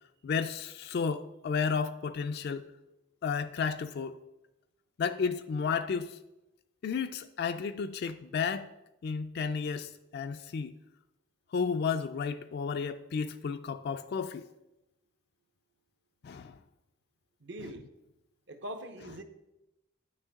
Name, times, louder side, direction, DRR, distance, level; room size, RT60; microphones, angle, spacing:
voice 1, 0.2-2.7 3.2-4.2 5.0-6.2 6.8-8.7 9.0-10.8 11.5-14.5 16.2-16.5 17.6-17.7, left 5 dB, 55° left, 0.3 m, -32 dB
voice 2, 17.4-17.9 18.5-19.2, right 1 dB, 65° right, 0.9 m, -42 dB
9.2 x 6.5 x 3.6 m
head